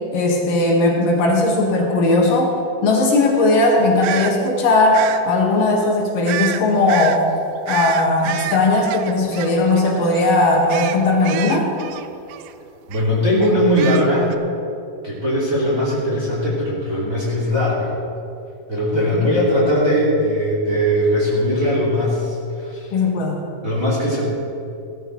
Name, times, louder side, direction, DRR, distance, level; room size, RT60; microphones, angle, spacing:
voice 1, 0.1-2.5 2.8-7.3 7.7-11.7 19.1-19.2 22.9-23.4, left 2 dB, 70° left, -1 dB, 3.1 m, -17 dB
sound 1, 4.0-4.3 4.9-5.2 6.3-6.6 6.9-7.2 7.7-9.9 10.1-10.3 10.7-12.5 12.9-13.0 13.4-14.3, right 12 dB, 85° right, 1.7 m, -28 dB
voice 2, 12.9-14.4 15.0-17.9 18.7-22.9 23.6-24.3, equal, 25° right, -6 dB, 2.7 m, -19 dB
16.5 x 13.0 x 3.9 m, 2.8 s
omnidirectional pair, 4.2 m